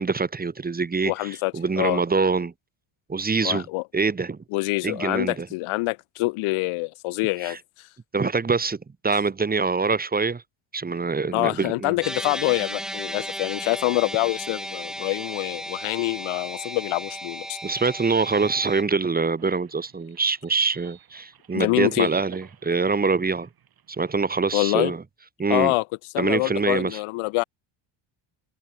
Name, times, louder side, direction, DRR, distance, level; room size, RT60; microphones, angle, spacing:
voice 1, 0.0-2.5 3.1-3.6 3.9-4.4 4.8-5.5 7.4-7.6 8.1-8.8 9.0-10.4 10.7-12.0 17.6-23.5 23.9-25.0 25.4-25.7 26.2-27.0, right 4 dB, 20° right, 1.5 m, -24 dB
voice 2, 1.0-2.0 3.4-3.8 4.5-7.6 11.3-17.6 21.5-22.1 24.5-24.9 25.5-25.8 26.1-27.4, left 23 dB, 85° left, 1.6 m, -25 dB
sound 1, 12.0-18.8, equal, ahead, 1.1 m, -35 dB
sound 2, 18.7-24.2, right 9 dB, 45° right, 6.1 m, -50 dB
cardioid pair, 115°, 49 cm